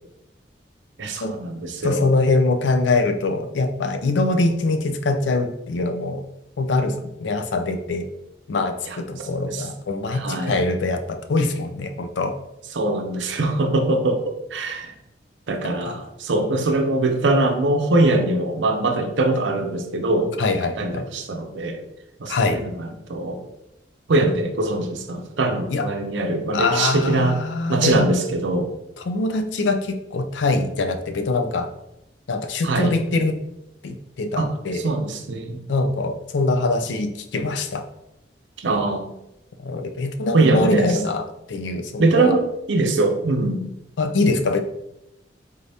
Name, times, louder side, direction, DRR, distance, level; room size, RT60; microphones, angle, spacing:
voice 1, 1.0-2.1 8.9-9.0 9.5-9.7 10.1-10.6 12.7-14.9 15.5-20.3 20.8-21.8 22.2-23.4 24.1-27.4 27.7-28.7 32.6-32.9 34.4-35.6 38.6-39.1 40.3-40.9 42.0-43.6, right 2 dB, 85° right, 5 dB, 0.6 m, -22 dB
voice 2, 1.8-6.2 6.6-8.1 8.5-12.3 15.8-16.0 20.4-21.0 22.3-22.6 25.7-25.8 26.5-28.1 29.0-31.7 32.3-33.4 33.8-34.9 35.7-37.8 39.6-42.4 44.0-44.6, left 3 dB, 80° left, 7 dB, 0.4 m, -23 dB
3.7 x 3.3 x 2.7 m, 0.88 s
head